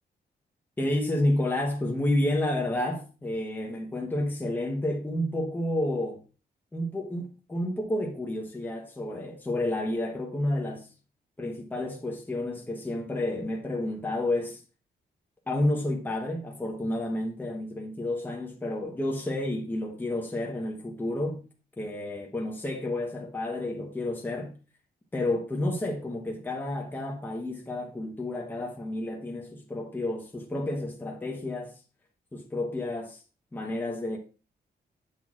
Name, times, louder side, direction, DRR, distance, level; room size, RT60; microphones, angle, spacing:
voice 1, 0.8-6.2 6.7-10.9 11.4-14.6 15.5-21.4 21.8-24.5 25.1-31.7 32.3-33.2 33.5-34.2, left 1 dB, 10° left, 0.9 m, -30 dB
8.9 x 6.1 x 2.4 m
wide cardioid pair, 180°, 17 cm